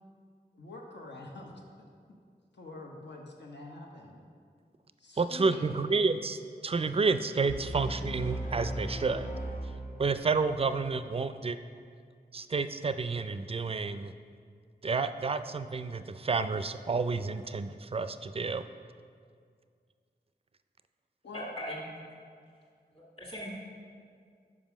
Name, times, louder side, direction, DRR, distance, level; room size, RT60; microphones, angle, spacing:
voice 1, 0.5-1.6 2.1-2.2 2.5-4.2 5.0-5.7 7.5-7.7 21.2-21.5, left 2 dB, 75° left, 0 dB, 0.9 m, -46 dB
voice 2, 5.2-9.3 10.0-11.6 12.3-14.1 14.8-18.6, right 4 dB, 35° right, 11 dB, 0.3 m, -30 dB
sound 1, 7.5-10.4, right 1 dB, 50° left, 1.1 m, -37 dB
voice 3, 21.3-21.9 22.9-23.6, equal, 30° left, -5 dB, 1.6 m, -39 dB
5.4 x 4.8 x 6.0 m, 2.1 s
cardioid pair, 40°, 18 cm